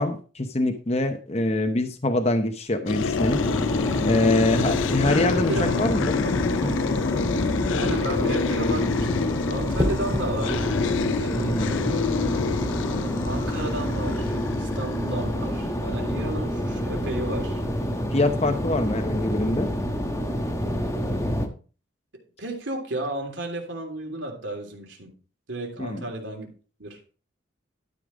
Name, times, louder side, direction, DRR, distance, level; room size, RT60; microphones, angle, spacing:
voice 1, 0.0-3.4 4.0-6.1 6.6-6.7 11.4-11.7 18.1-19.7 25.8-26.0, left 2 dB, 35° left, 6 dB, 0.9 m, -24 dB
sound 1, 2.9-15.8, left 5 dB, 80° left, 0.4 m, -28 dB
sound 2, 3.2-21.5, equal, 15° left, 1.3 m, -28 dB
voice 2, 5.1-5.7 6.2-6.3 7.7-10.7 11.0-12.1 13.2-17.6 22.4-25.1 25.5-26.5 26.8-27.0, right 1 dB, 75° right, 2 dB, 3.1 m, -33 dB
sound 3, 9.8-10.3 12.3-12.6, left 1 dB, 15° right, 2.9 m, -28 dB
12.5 x 5.2 x 5.1 m, 0.37 s
head